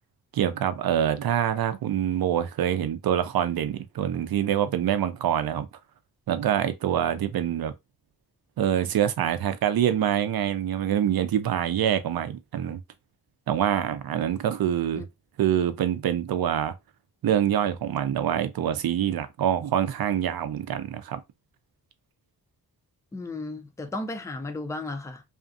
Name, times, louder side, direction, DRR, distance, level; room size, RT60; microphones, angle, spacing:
voice 1, 0.3-5.7 6.3-7.7 8.6-12.8 13.5-15.0 15.4-16.7 17.2-21.2, right 10 dB, 65° right, 0.5 m, -25 dB
voice 2, 23.1-25.2, left 2 dB, 10° left, 0.4 m, -34 dB
2.5 x 2.5 x 2.5 m
cardioid pair, 90°, 39 cm